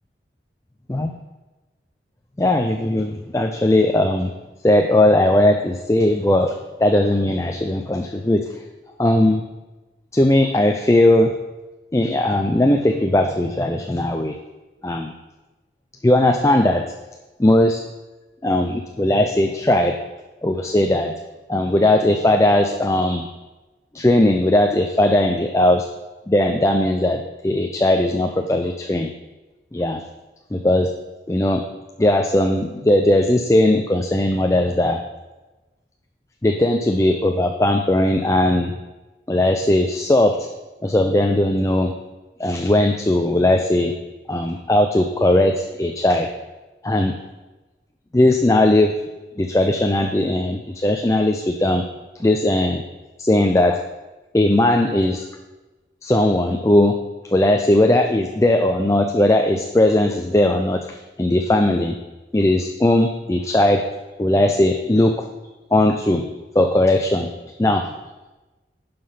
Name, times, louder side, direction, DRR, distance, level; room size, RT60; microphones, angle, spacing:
voice 1, 2.4-4.3 4.6-8.6 9.0-9.4 10.1-11.3 11.9-14.4 14.8-15.1 16.0-16.8 17.4-17.8 18.4-20.0 20.4-21.1 21.5-23.3 23.9-25.8 26.3-29.1 29.7-30.0 30.5-30.9 31.3-31.6 32.0-35.0 36.4-38.7 39.3-40.5 40.8-41.9 42.4-43.9 44.3-46.3 46.8-47.2 48.1-49.0 49.4-51.8 52.2-52.8 53.2-53.8 54.3-55.3 56.0-57.0 57.3-60.9 61.2-62.0 62.3-63.9 64.2-65.1 65.7-66.2 66.5-67.3 67.6-67.9, left 1 dB, 15° left, 4 dB, 0.4 m, -18 dB
11.5 x 5.2 x 5.6 m, 1.1 s
head